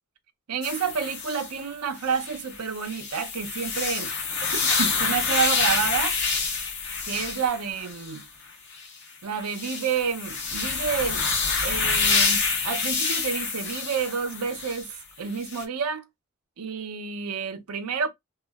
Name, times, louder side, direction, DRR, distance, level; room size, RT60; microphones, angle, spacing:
voice 1, 0.5-4.1 4.5-6.2 7.1-8.2 9.2-16.0 16.6-18.1, right 6 dB, 90° right, 0.6 m, -29 dB
sound 1, 0.6-1.6 2.0-8.2 8.7-8.9 9.4-14.9 15.4-15.6, left 4 dB, 50° left, 0.7 m, -27 dB
2.3 x 2.0 x 3.4 m
head